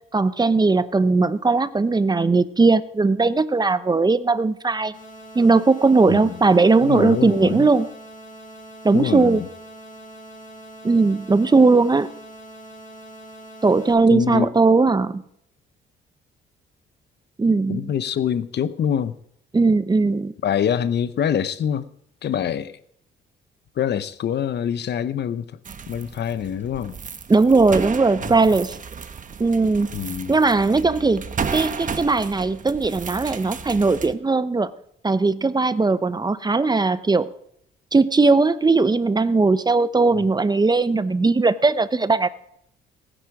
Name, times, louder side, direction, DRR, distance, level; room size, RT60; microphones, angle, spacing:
voice 1, 0.1-4.9 5.3-7.9 8.8-9.4 10.8-12.1 13.6-15.2 17.4-17.9 19.5-20.3 27.3-28.8 29.4-29.9 30.3-34.7 35.0-37.3 37.9-42.3, right 3 dB, 20° right, 0.8 m, -18 dB
sound 1, 4.9-13.9, right 1 dB, 40° left, 6.4 m, -43 dB
voice 2, 6.1-6.4 6.8-7.7 8.9-9.5 14.1-14.5 17.7-19.2 20.4-21.9 22.2-22.8 23.8-25.5 25.9-27.0 29.9-30.4 40.1-40.2, left 8 dB, 60° left, 0.9 m, -25 dB
sound 2, 25.6-34.1, right 6 dB, 40° right, 1.2 m, -33 dB
19.5 x 10.0 x 4.9 m
cardioid pair, 90°, 20 cm